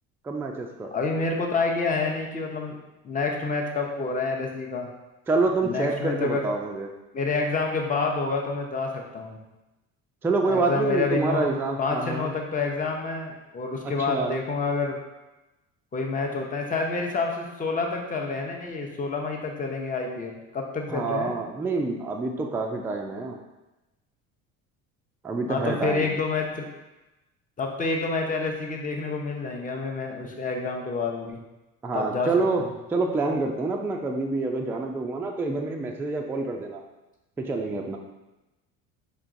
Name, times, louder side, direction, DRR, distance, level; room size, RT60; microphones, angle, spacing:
voice 1, 0.2-0.9 5.3-6.9 10.2-12.3 13.8-14.3 20.9-23.4 25.2-26.1 31.8-32.6 32.9-36.8 37.4-38.0, right 3 dB, 5° right, 1 dB, 0.3 m, -27 dB
voice 2, 0.9-2.8 3.0-4.9 5.6-6.5 7.1-9.4 10.5-11.5 11.8-15.0 15.9-21.3 25.5-26.6 27.6-31.4 31.9-32.3 32.6-32.7, left 4 dB, 20° left, 1 dB, 0.7 m, -28 dB
4.3 x 3.0 x 2.6 m, 1.0 s
hypercardioid pair, 65°, 40 cm